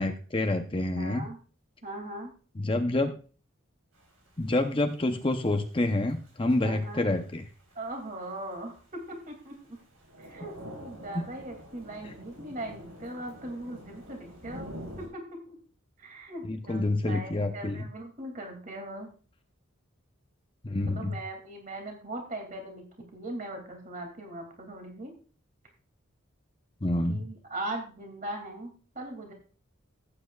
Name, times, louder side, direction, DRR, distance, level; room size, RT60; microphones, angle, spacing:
voice 1, 0.0-1.3 2.6-3.1 4.4-7.4 11.1-11.2 16.5-17.8 20.6-21.2 26.8-27.2, left 2 dB, 25° left, 6 dB, 0.7 m, -28 dB
voice 2, 0.9-1.4 1.8-2.3 6.6-7.0 7.7-9.8 10.2-15.6 16.0-19.1 20.9-22.8 23.1-25.1 27.1-29.3, right 1 dB, 40° right, 3 dB, 2.5 m, -40 dB
Thunder / Rain, 3.9-15.1, equal, 80° right, 5.1 m, -47 dB
16.0 x 8.8 x 2.4 m, 0.38 s
head